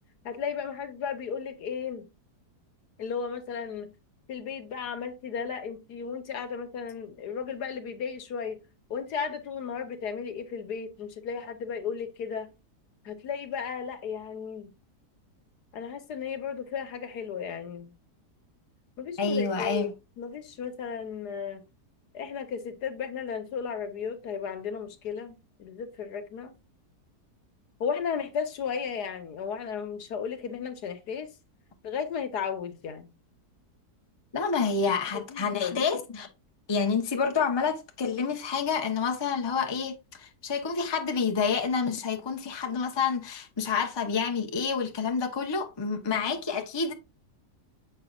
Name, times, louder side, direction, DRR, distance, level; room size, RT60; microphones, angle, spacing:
voice 1, 0.2-2.1 3.0-3.9 4.3-8.6 8.9-12.5 13.0-14.7 15.7-17.9 19.0-19.9 20.2-21.6 22.1-26.6 27.8-31.3 31.8-33.1 35.3-35.8, left 6 dB, 75° left, 1.6 m, -34 dB
voice 2, 19.2-19.9 34.3-36.3 36.7-46.9, left 5 dB, 20° left, 0.8 m, -28 dB
7.5 x 5.6 x 2.4 m
omnidirectional pair, 1.8 m